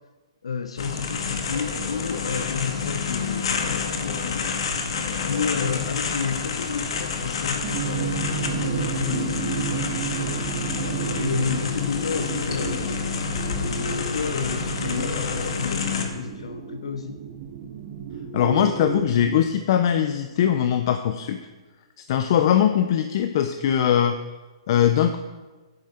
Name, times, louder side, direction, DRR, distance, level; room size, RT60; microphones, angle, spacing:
voice 1, 0.4-4.6 5.2-10.8 11.1-13.0 13.6-17.2, left 6 dB, 85° left, 8 dB, 0.8 m, -31 dB
sound 1, 0.8-16.1, left 5 dB, 70° left, 1.9 m, -28 dB
sound 2, 7.6-19.3, right 8 dB, 40° right, 1.4 m, -32 dB
voice 2, 18.3-21.4 22.1-24.2 24.7-25.2, left 9 dB, 50° left, 8 dB, 0.7 m, -21 dB
11.5 x 9.6 x 4.4 m, 1.2 s
hypercardioid pair, 150°, 3 cm